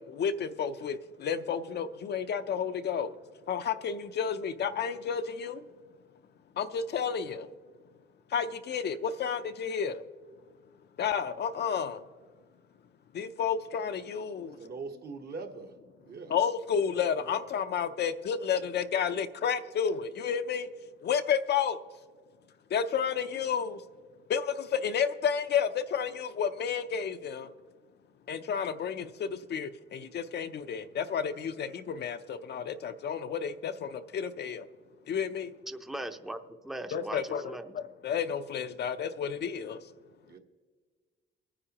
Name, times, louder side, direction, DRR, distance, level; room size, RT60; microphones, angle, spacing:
voice 1, 0.0-3.2 3.5-5.6 6.6-7.5 8.3-10.0 11.0-12.0 13.1-14.6 16.3-20.7 21.0-21.8 22.7-23.8 24.3-27.5 28.3-34.7 35.1-35.5 36.9-39.8, left 7 dB, 55° left, 9 dB, 0.6 m, -31 dB
voice 2, 14.4-15.7 16.0-16.4 40.2-40.4, right 4 dB, 55° right, 5 dB, 1.2 m, -42 dB
voice 3, 35.7-37.7, right 1 dB, ahead, 8 dB, 0.6 m, -39 dB
22.0 x 9.8 x 2.9 m, 1.5 s
cardioid pair, 90°, 20 cm